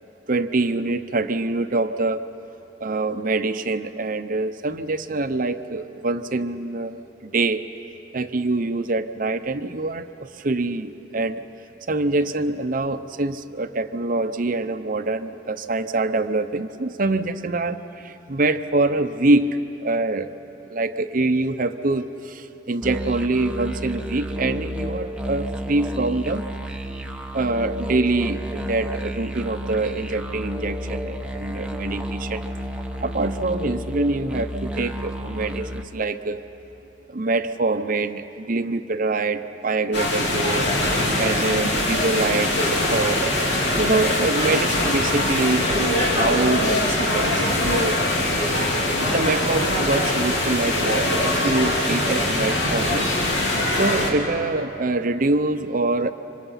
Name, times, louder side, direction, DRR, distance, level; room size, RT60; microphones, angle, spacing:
voice 1, 0.3-2.2 2.8-7.6 8.1-11.4 11.9-19.5 19.8-20.3 20.7-26.4 27.3-32.4 33.0-36.4 37.1-40.7 41.2-43.3 43.8-48.0 49.1-53.1 53.8-56.1, right 2 dB, 50° right, 10 dB, 0.8 m, -25 dB
sound 1, 22.8-35.8, equal, 5° right, 1.0 m, -31 dB
sound 2, 39.9-54.1, left 1 dB, 75° left, 3.3 m, -22 dB
27.0 x 25.5 x 5.8 m, 2.9 s
head